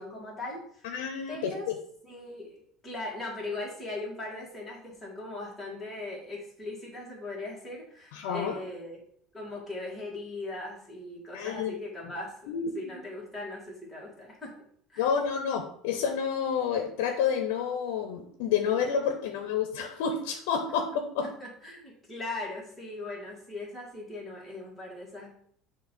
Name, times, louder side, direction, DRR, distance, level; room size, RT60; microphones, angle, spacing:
voice 1, 0.0-0.9 1.3-1.7 2.0-9.0 9.3-14.6 14.9-15.1 21.4-25.3, left 2 dB, 5° left, -5 dB, 2.0 m, -39 dB
voice 2, 0.8-1.7 8.1-8.6 11.3-11.7 12.5-12.9 15.0-21.3, left 7 dB, 90° left, 5 dB, 0.7 m, -29 dB
6.4 x 2.8 x 5.3 m, 0.63 s
cardioid pair, 155°, 0 cm